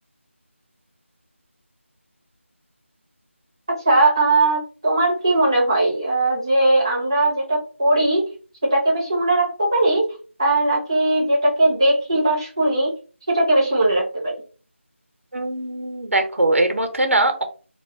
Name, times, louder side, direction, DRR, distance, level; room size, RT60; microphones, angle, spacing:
voice 1, 3.7-8.3 8.6-10.1 10.4-12.9 13.3-14.3, right 2 dB, 25° right, -4 dB, 0.8 m, -19 dB
voice 2, 15.3-17.4, right 2 dB, 75° right, 5 dB, 0.9 m, -21 dB
2.5 x 2.3 x 3.6 m, 0.37 s
figure-of-eight pair, 180°, 7 cm